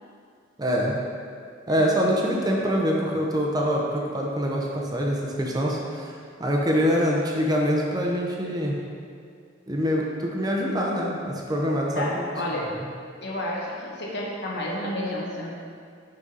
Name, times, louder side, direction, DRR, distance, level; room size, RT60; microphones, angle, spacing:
voice 1, 0.6-1.0 1.7-6.1 6.4-8.8 9.7-12.2, equal, 20° right, -2 dB, 0.7 m, -24 dB
voice 2, 1.7-2.0 11.9-12.8 13.2-15.5, left 1 dB, 60° left, -2 dB, 1.1 m, -31 dB
6.1 x 5.4 x 4.0 m, 2.2 s
head